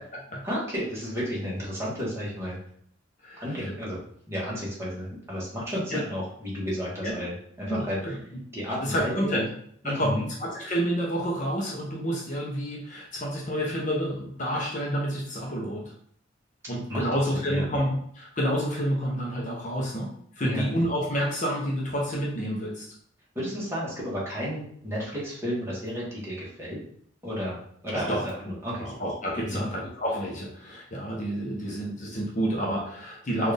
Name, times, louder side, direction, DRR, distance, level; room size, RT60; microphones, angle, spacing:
voice 1, 0.4-2.6 3.4-4.0 4.3-8.2 8.5-9.4 9.8-10.2 16.9-17.6 20.4-20.7 23.3-26.8 27.2-27.6 27.8-28.2 28.4-28.9 29.4-29.7, equal, 15° right, -7 dB, 1.4 m, -32 dB
voice 2, 3.2-3.7 5.9-6.0 7.0-7.2 7.7-8.1 8.8-9.5 9.8-15.9 16.7-20.1 20.4-22.8 27.9-33.5, equal, 40° left, -2 dB, 0.8 m, -29 dB
4.2 x 2.5 x 3.3 m, 0.64 s
head